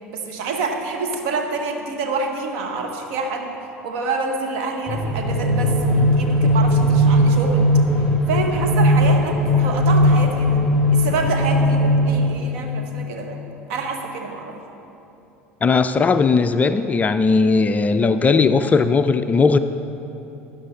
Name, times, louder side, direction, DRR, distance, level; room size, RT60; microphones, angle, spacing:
voice 1, 0.1-3.6 3.8-7.7 8.0-10.6 10.9-13.4 13.7-14.6, right 3 dB, 55° right, 3 dB, 1.2 m, -27 dB
sound 1, 4.9-12.8, equal, ahead, 1.5 m, -18 dB
voice 2, 15.6-19.6, left 4 dB, 20° left, 10 dB, 0.4 m, -17 dB
12.5 x 9.9 x 4.0 m, 3.0 s
figure-of-eight pair, 70°, 7 cm